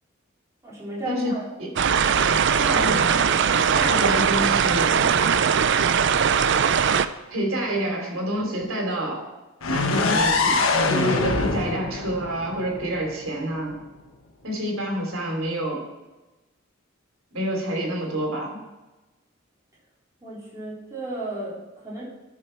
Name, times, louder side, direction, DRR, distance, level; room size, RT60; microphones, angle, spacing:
voice 1, 0.6-1.4 20.2-22.0, right 2 dB, 15° right, -7 dB, 4.1 m, -34 dB
sound 1, 1.8-7.1, right 7 dB, 60° right, 0.5 m, -20 dB
voice 2, 2.6-3.2 3.7-5.1 7.3-9.2 9.7-10.6 10.9-13.8 14.4-15.8 17.3-18.5, right 1 dB, 80° right, 0 dB, 3.2 m, -27 dB
sound 2, 9.6-13.5, left 3 dB, 90° left, 1.2 m, -24 dB
13.0 x 6.6 x 4.5 m, 1.1 s
head